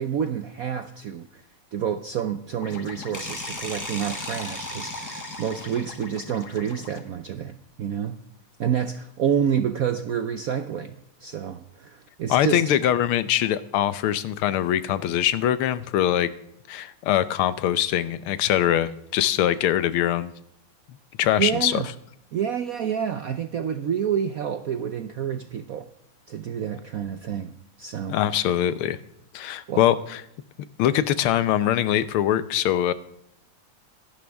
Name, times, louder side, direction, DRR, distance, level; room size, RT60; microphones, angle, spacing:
voice 1, 0.0-1.4 1.7-8.2 8.6-10.9 11.2-12.6 21.4-21.9 22.3-25.9 26.3-28.5 29.7-29.8, right 8 dB, 70° right, 10 dB, 0.8 m, -28 dB
sound 1, 2.6-7.0, left 4 dB, 50° left, 1.8 m, -41 dB
sound 2, 3.1-6.1, equal, 10° left, 1.7 m, -36 dB
voice 2, 12.3-16.3 16.7-20.3 21.2-21.8 28.1-29.0 29.3-30.2 30.8-32.9, left 11 dB, 85° left, 14 dB, 1.7 m, -23 dB
24.0 x 11.5 x 3.5 m, 0.74 s
omnidirectional pair, 2.3 m